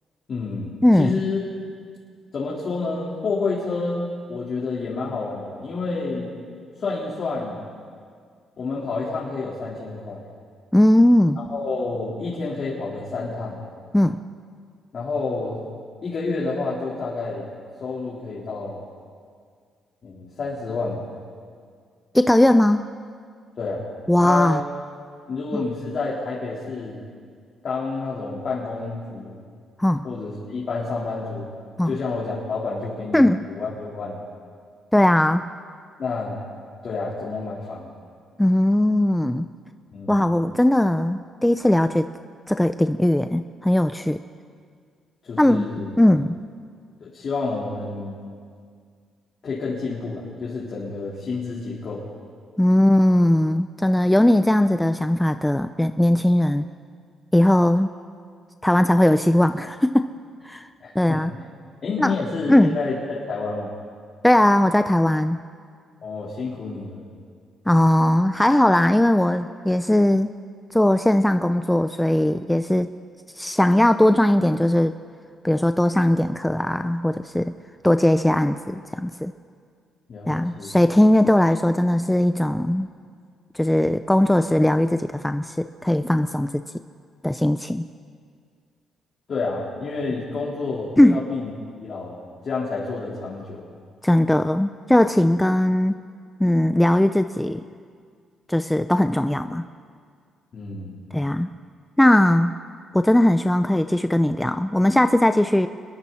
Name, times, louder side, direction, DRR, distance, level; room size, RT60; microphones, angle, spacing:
voice 1, 0.3-1.4 2.3-6.3 6.8-7.6 8.6-10.2 11.4-13.6 14.9-15.6 16.0-17.5 17.8-18.8 20.0-21.0 23.5-23.8 24.2-24.6 25.3-27.0 27.6-29.4 30.0-31.5 31.8-34.2 36.0-36.4 36.8-37.9 39.9-40.2 45.2-45.9 47.0-48.2 49.4-52.0 60.8-61.2 61.8-63.7 66.0-67.0 80.1-80.8 89.3-91.5 91.8-93.6 100.5-101.0, left 3 dB, 50° left, -6 dB, 4.1 m, -29 dB
voice 2, 0.8-1.2 10.7-11.4 13.9-14.2 22.1-22.8 24.1-24.6 25.5-25.6 29.8-30.0 31.8-32.0 33.1-33.4 34.9-35.5 38.4-39.5 40.1-42.1 42.5-44.2 45.4-45.7 46.0-46.3 52.6-56.7 57.3-57.9 58.6-60.1 60.4-60.7 60.9-61.3 62.0-62.2 62.5-62.8 64.2-65.4 67.7-70.3 70.7-72.9 73.4-74.9 75.4-77.5 77.8-79.3 80.3-82.9 83.5-86.6 87.2-87.8 91.0-91.2 94.0-96.0 96.4-97.6 98.5-99.7 101.1-101.5 102.0-102.5 102.9-105.7, left 1 dB, 5° left, 9 dB, 0.6 m, -19 dB
28.0 x 22.0 x 4.3 m, 2.1 s
cardioid pair, 90°, 0 cm